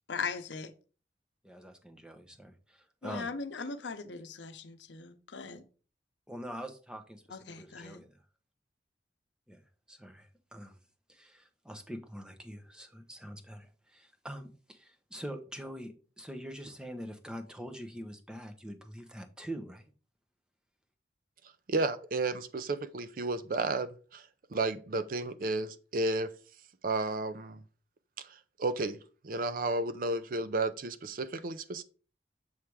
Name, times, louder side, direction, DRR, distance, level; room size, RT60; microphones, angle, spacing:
voice 1, 0.1-0.7 3.0-5.6 7.3-8.0, left 4 dB, 90° left, 0.7 m, -39 dB
voice 2, 1.4-3.3 6.3-8.2 9.5-9.6 9.9-10.8 11.1-19.9, equal, 5° right, 0.7 m, -44 dB
voice 3, 21.7-24.2 24.5-26.3 26.8-27.6 28.6-29.0 29.2-31.8, right 2 dB, 50° right, 0.5 m, -32 dB
7.1 x 3.4 x 4.6 m
head